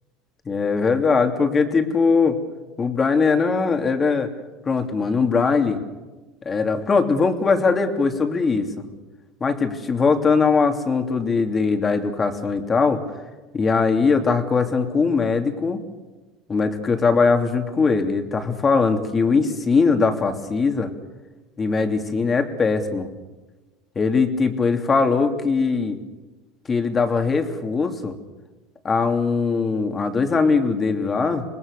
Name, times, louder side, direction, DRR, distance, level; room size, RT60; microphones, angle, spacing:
voice 1, 0.5-2.4 2.8-4.3 4.7-5.8 6.4-8.7 9.4-13.0 13.5-15.8 16.5-20.9 21.6-23.1 23.9-26.0 26.7-28.2 28.8-31.5, left 4 dB, 25° left, 6 dB, 2.9 m, -20 dB
27.0 x 20.0 x 6.8 m, 1.2 s
supercardioid pair, 110°, 0 cm